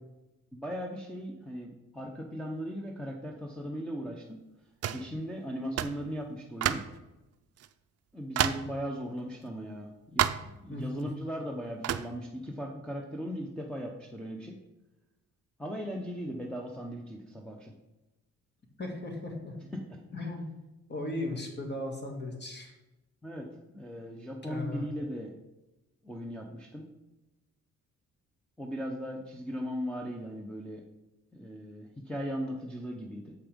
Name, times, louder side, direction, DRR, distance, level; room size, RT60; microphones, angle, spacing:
voice 1, 0.5-4.4 4.9-6.8 8.1-14.6 15.6-17.7 19.7-20.0 23.2-25.4 26.0-26.9 28.6-30.8 31.3-33.3, equal, 5° left, 0 dB, 0.9 m, -38 dB
sound 1, 4.8-5.1 5.8-6.0 6.6-7.0 7.6-7.7 8.4-8.7 10.2-10.5 11.8-12.1, right 11 dB, 55° right, 0.5 m, -29 dB
voice 2, 10.7-11.1 18.8-19.5 20.1-20.5 20.9-22.7 24.4-24.9, left 2 dB, 35° left, 2 dB, 2.1 m, -36 dB
7.2 x 5.5 x 5.2 m, 1.0 s
cardioid pair, 90°, 30 cm